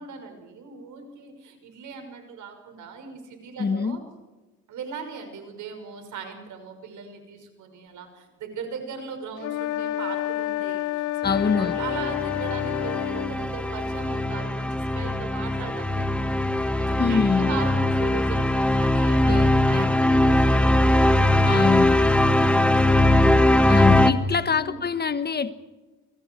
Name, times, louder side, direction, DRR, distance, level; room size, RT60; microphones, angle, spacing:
voice 1, 0.0-4.0 4.7-23.5 24.0-24.8, right 5 dB, 75° right, 6.0 m, -39 dB
voice 2, 3.6-4.0 11.2-11.8 17.0-17.5 19.3-19.9 21.5-22.0 23.7-25.5, left 5 dB, 35° left, 1.4 m, -24 dB
sound 1, 9.4-13.3, left 14 dB, 85° left, 0.7 m, -29 dB
sound 2, 11.3-24.1, left 1 dB, 5° left, 1.7 m, -21 dB
29.5 x 24.0 x 4.8 m
cardioid pair, 90°, 30 cm